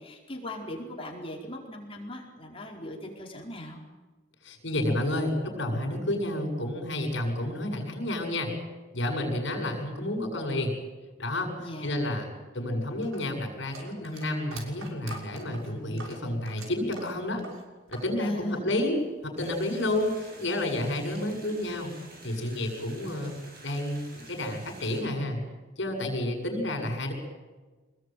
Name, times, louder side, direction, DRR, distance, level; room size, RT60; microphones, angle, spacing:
voice 1, 0.0-3.8 11.6-12.0 18.2-18.7 20.9-21.1, left 1 dB, 25° left, 0 dB, 4.7 m, -40 dB
voice 2, 4.4-8.5 8.9-10.7 11.2-12.3 12.5-17.4 17.9-21.9 22.2-23.3 23.6-25.4 25.8-27.1, left 1 dB, 60° left, 4 dB, 7.6 m, -30 dB
sound 1, 13.0-18.1 18.4-19.2, right 3 dB, 85° right, 6.3 m, -45 dB
sound 2, 19.4-25.0, right 2 dB, 45° right, 6.6 m, -50 dB
26.0 x 21.0 x 9.4 m, 1.3 s
head